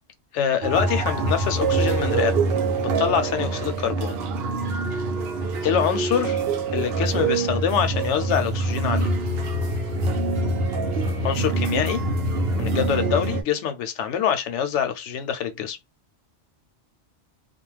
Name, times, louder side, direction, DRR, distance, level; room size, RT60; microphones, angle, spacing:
voice 1, 0.3-2.3 2.8-4.2 5.6-6.4 6.7-9.1 11.2-12.0 12.6-15.8, left 8 dB, 80° left, 0.9 m, -25 dB
sound 1, 0.6-13.4, right 3 dB, 65° right, 0.8 m, -25 dB
2.3 x 2.1 x 3.2 m
omnidirectional pair, 1.2 m